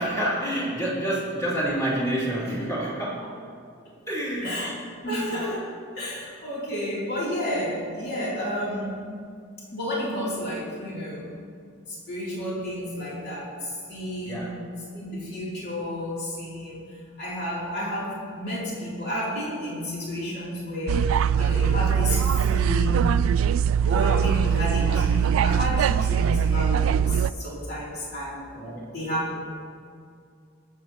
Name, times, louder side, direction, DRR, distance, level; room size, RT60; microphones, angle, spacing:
voice 1, 0.0-3.3 4.1-4.6 5.0-5.2 14.2-14.5 28.5-28.9, right 1 dB, 15° left, -7 dB, 2.6 m, -28 dB
voice 2, 5.1-5.6 5.9-9.1 9.7-11.3 11.9-14.6 14.9-16.8 17.2-21.1 21.4-23.1 23.8-28.6 28.9-29.4, left 1 dB, 55° left, -7 dB, 3.0 m, -31 dB
sound 1, 20.9-27.3, right 8 dB, 90° right, 0.3 m, -22 dB
22.5 x 7.6 x 2.9 m, 2.3 s
head